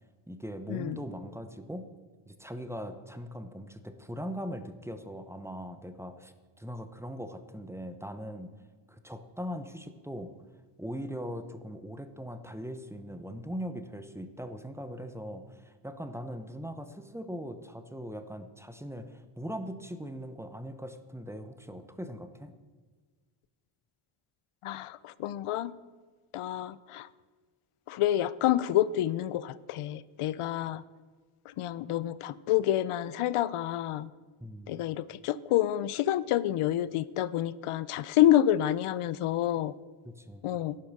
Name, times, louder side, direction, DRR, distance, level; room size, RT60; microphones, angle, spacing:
voice 1, 0.3-1.9 2.3-8.5 8.9-10.3 10.8-22.5 34.4-34.7 40.2-40.5, equal, 5° right, 9 dB, 0.9 m, -40 dB
voice 2, 24.6-25.7 26.3-27.1 27.9-30.8 31.5-34.1 34.7-39.7 40.4-40.8, left 12 dB, 85° left, 18 dB, 0.6 m, -28 dB
11.0 x 10.5 x 6.6 m, 1.4 s
wide cardioid pair, 130°, 50 cm